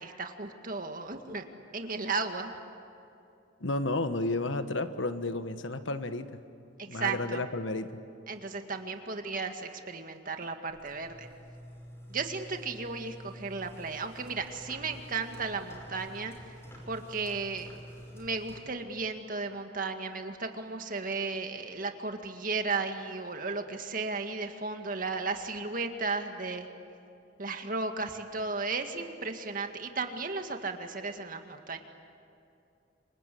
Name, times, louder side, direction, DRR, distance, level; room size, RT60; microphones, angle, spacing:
voice 1, 0.0-1.4 1.7-2.5 6.8-7.4 8.3-11.3 12.1-16.3 16.9-17.7 18.1-26.7 27.4-31.8, right 4 dB, 45° right, 6 dB, 1.9 m, -35 dB
voice 2, 3.6-6.4 6.9-7.9, left 2 dB, 85° left, 10 dB, 1.4 m, -32 dB
sound 1, 10.7-18.6, equal, 15° left, 5.6 m, -48 dB
28.5 x 25.0 x 8.5 m, 2.7 s
head